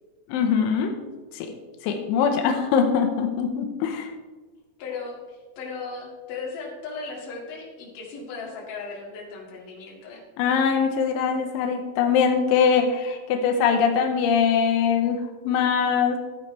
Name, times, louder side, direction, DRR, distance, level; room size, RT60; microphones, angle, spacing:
voice 1, 0.3-0.9 1.3-1.5 1.8-4.1 10.4-16.2, left 6 dB, 85° left, 4 dB, 3.3 m, -22 dB
voice 2, 4.8-10.2, left 4 dB, 55° left, -2 dB, 3.1 m, -36 dB
14.0 x 8.6 x 3.2 m, 1.3 s
omnidirectional pair, 5.4 m